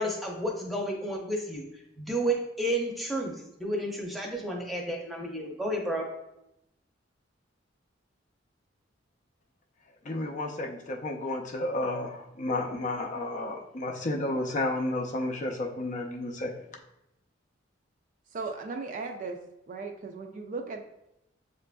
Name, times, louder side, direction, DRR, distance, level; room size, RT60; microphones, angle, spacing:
voice 1, 0.0-1.6 2.0-6.1, right 1 dB, ahead, -2 dB, 0.7 m, -31 dB
voice 2, 10.0-16.5, left 2 dB, 40° left, 1 dB, 0.5 m, -32 dB
voice 3, 18.3-19.4 19.7-20.8, right 4 dB, 45° right, 4 dB, 0.4 m, -36 dB
7.4 x 2.5 x 2.2 m, 0.86 s
head